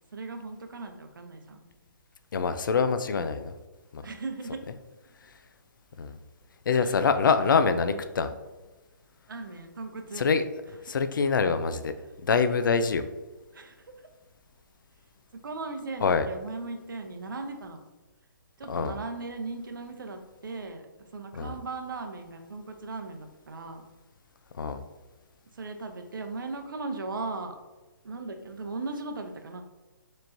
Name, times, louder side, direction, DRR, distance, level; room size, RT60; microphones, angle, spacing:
voice 1, 0.1-1.6 4.0-4.6 6.7-7.1 9.3-10.2 13.5-13.9 15.3-17.8 18.6-23.8 25.5-27.6 28.0-29.6, right 3 dB, 75° right, 5 dB, 0.7 m, -38 dB
voice 2, 2.3-3.5 3.9-4.0 6.0-6.2 6.7-8.3 10.2-10.4 10.8-11.9 12.2-13.1 16.0-16.3 18.7-19.0 21.4-21.6 24.6-24.8, left 5 dB, 70° left, 10 dB, 0.4 m, -25 dB
4.3 x 3.1 x 2.7 m, 1.1 s
hypercardioid pair, 150°, 11 cm